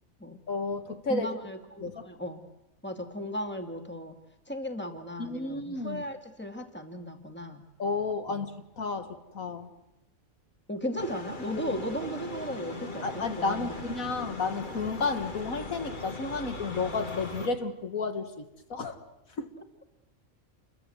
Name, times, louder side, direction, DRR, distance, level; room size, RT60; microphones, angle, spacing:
voice 1, 0.5-1.3 1.8-2.1 5.2-6.0 7.8-9.7 11.5-11.8 13.0-18.4 18.7-19.0 19.4-19.5, left 4 dB, 80° left, 7 dB, 2.2 m, -32 dB
voice 2, 1.1-2.4 2.8-4.1 4.5-7.6 8.3-8.5 10.7-13.8, equal, 10° left, 5 dB, 2.3 m, -36 dB
sound 1, 11.0-17.5, left 2 dB, 35° left, 2.1 m, -39 dB
29.0 x 23.0 x 8.0 m, 0.91 s
omnidirectional pair, 1.4 m